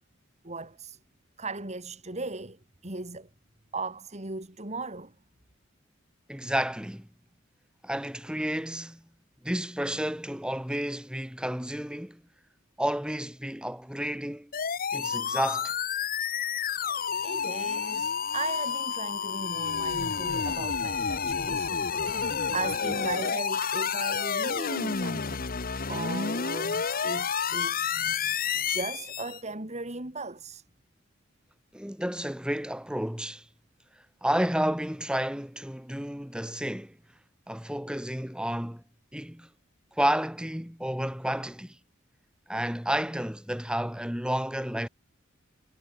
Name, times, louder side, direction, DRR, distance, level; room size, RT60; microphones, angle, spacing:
voice 1, 0.4-1.0 1.4-3.3 3.7-5.1 17.2-21.7 22.0-25.5 25.9-30.6, right 3 dB, 35° right, 3.2 m, -38 dB
voice 2, 6.3-7.1 7.8-9.0 9.4-12.2 12.8-14.5 14.9-15.7 31.7-33.4 34.2-37.0 37.5-38.8 39.1-39.5 40.0-41.8 42.5-44.9, right 1 dB, 5° right, 2.9 m, -31 dB
sound 1, 14.5-29.4, left 6 dB, 45° left, 1.1 m, -30 dB
head